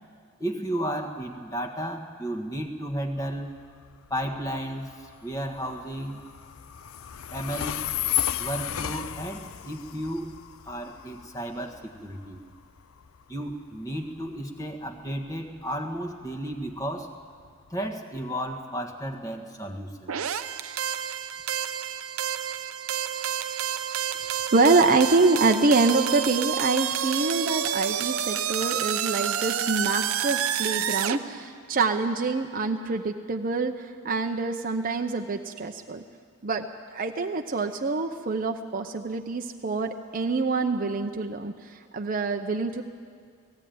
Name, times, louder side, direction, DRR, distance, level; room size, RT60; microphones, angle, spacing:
voice 1, 0.4-3.6 4.1-6.2 7.3-7.8 8.4-10.3 10.6-12.4 13.3-17.1 17.7-20.1, equal, 15° left, 2 dB, 1.6 m, -33 dB
Train, 3.2-17.9, left 11 dB, 75° left, 0.6 m, -35 dB
sound 1, 20.1-31.2, right 9 dB, 80° right, 0.7 m, -29 dB
voice 2, 24.5-36.0 36.4-42.8, right 3 dB, 40° right, 4 dB, 0.7 m, -25 dB
18.0 x 16.0 x 9.3 m, 2.1 s
head